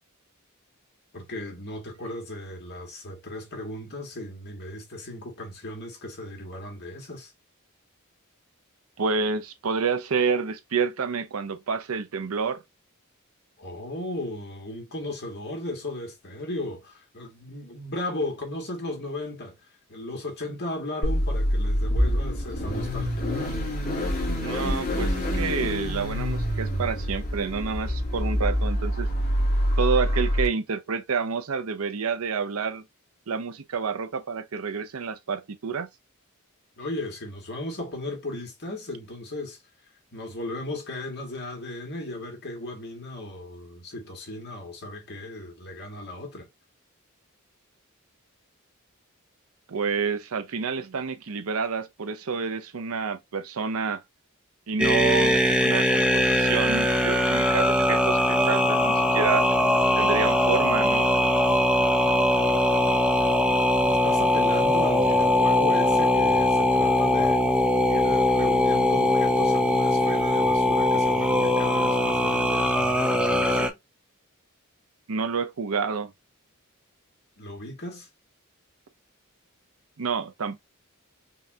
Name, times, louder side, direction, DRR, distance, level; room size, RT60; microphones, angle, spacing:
voice 1, 1.1-7.3 13.6-19.5 19.9-23.3 36.8-39.6 40.1-46.5 64.0-67.4 67.9-73.8 77.4-78.1, left 2 dB, 50° left, 1.6 m, -36 dB
voice 2, 9.0-12.6 24.4-29.1 29.8-32.8 33.3-35.9 49.7-54.0 54.7-59.5 60.0-61.1 75.1-76.1 80.0-80.6, right 5 dB, 75° right, 0.6 m, -29 dB
Car / Idling / Accelerating revving vroom, 21.0-30.5, equal, 35° left, 1.9 m, -26 dB
sound 1, 54.8-73.7, left 1 dB, 5° right, 0.5 m, -21 dB
5.4 x 2.4 x 2.7 m
head